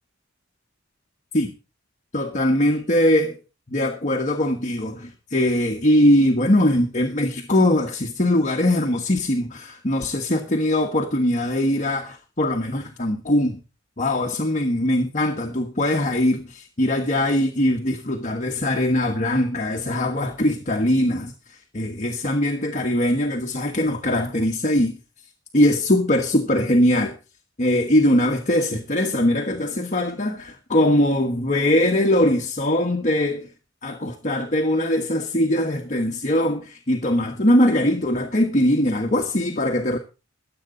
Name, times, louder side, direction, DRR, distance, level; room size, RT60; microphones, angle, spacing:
voice 1, 2.1-3.4 3.7-13.6 14.0-25.0 25.5-27.2 27.6-33.5 33.8-40.0, left 1 dB, 40° left, 1.3 m, -21 dB
22.5 x 8.0 x 3.9 m
head